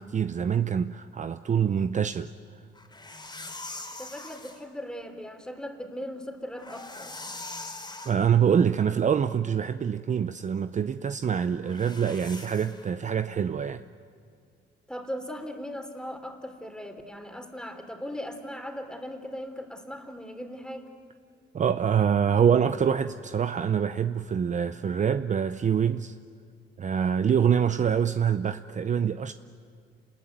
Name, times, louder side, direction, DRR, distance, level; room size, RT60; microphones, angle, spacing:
voice 1, 0.0-2.3 8.1-13.8 21.5-26.2 26.8-29.3, right 7 dB, 40° right, 0.6 m, -25 dB
sound 1, 2.8-4.6 6.4-8.2 11.6-12.9, left 2 dB, 20° left, 3.3 m, -42 dB
voice 2, 4.0-7.1 14.9-20.9, equal, 5° left, 3.2 m, -38 dB
28.5 x 20.5 x 9.3 m
cardioid pair, 90°, 20 cm